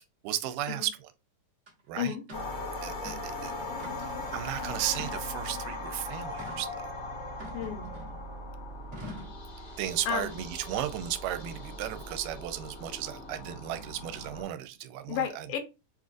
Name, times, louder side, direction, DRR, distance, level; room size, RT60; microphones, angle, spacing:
voice 1, 0.2-0.9 1.9-2.1 2.8-3.7 4.0-6.9 9.8-15.5, right 12 dB, 85° right, 2.2 m, -35 dB
sound 1, 1.7-1.8 2.3-2.5 2.9-3.3 3.8-4.2 4.9-5.6 6.4-6.7 7.4-8.3 8.9-9.4, left 1 dB, 55° right, 0.8 m, -45 dB
sound 2, 2.3-14.4, left 2 dB, 60° left, 0.7 m, -39 dB
voice 2, 7.5-7.9 10.1-10.4 15.1-15.6, left 9 dB, 80° left, 2.4 m, -32 dB
6.0 x 2.5 x 2.5 m
omnidirectional pair, 3.9 m